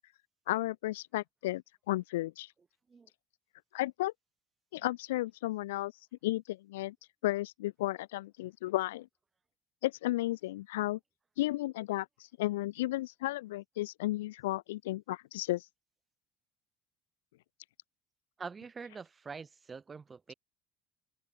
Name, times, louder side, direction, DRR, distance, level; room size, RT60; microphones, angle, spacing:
voice 1, 0.5-2.5 3.7-4.1 4.7-5.9 6.2-6.9 7.2-9.1 9.8-11.0 11.4-12.1 12.4-15.7, left 17 dB, 80° left, 0.7 m, -33 dB
voice 2, 18.4-20.3, right 5 dB, 30° right, 2.5 m, -45 dB
open air
hypercardioid pair, 65°, 0 cm